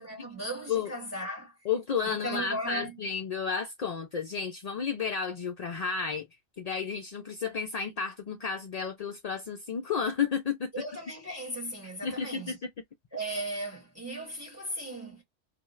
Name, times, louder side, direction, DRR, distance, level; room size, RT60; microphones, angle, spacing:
voice 1, 0.0-1.6 2.0-3.0 10.7-12.6 13.1-15.2, right 1 dB, 15° right, 1.2 m, -37 dB
voice 2, 1.7-6.3 6.6-10.7 12.0-12.6, left 6 dB, 65° left, 0.4 m, -32 dB
2.6 x 2.3 x 3.0 m
omnidirectional pair, 1.2 m